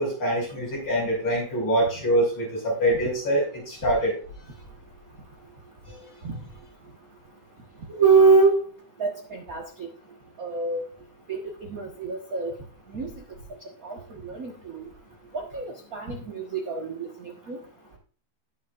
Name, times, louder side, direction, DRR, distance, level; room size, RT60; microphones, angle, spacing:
voice 1, 0.0-4.2, right 1 dB, 40° left, -3 dB, 6.3 m, -24 dB
voice 2, 7.9-8.6 9.0-9.6 10.4-10.8 11.3-11.4 11.7-12.5 12.9-13.1 13.8-14.0 14.2-14.8 15.3-15.6 15.9-17.1 17.5-17.6, right 4 dB, 45° right, 2 dB, 1.1 m, -23 dB
18.5 x 7.2 x 2.5 m, 0.41 s
omnidirectional pair, 3.7 m